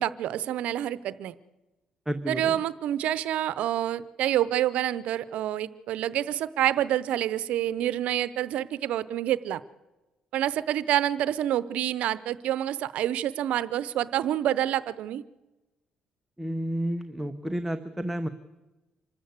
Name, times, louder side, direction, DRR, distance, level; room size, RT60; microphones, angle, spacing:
voice 1, 0.0-1.3 2.3-9.6 10.3-15.2, right 12 dB, 75° right, 17 dB, 0.8 m, -27 dB
voice 2, 2.1-2.4 16.4-18.3, right 1 dB, 5° right, 8 dB, 0.9 m, -30 dB
26.0 x 13.5 x 8.1 m, 1.1 s
cardioid pair, 110°, 2 cm